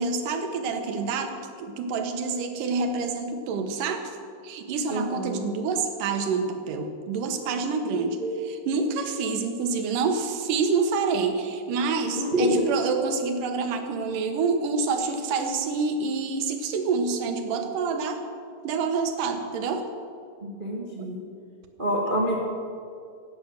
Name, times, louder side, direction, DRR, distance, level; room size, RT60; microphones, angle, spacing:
voice 1, 0.0-4.2 4.4-8.2 8.4-18.2 18.6-19.9 21.0-21.1, right 4 dB, 75° right, 6 dB, 2.7 m, -27 dB
voice 2, 4.9-5.4 8.2-8.3 12.1-12.6 20.4-21.2 21.8-22.4, equal, 35° right, -2 dB, 0.8 m, -26 dB
17.0 x 8.4 x 6.4 m, 2.4 s
omnidirectional pair, 3.8 m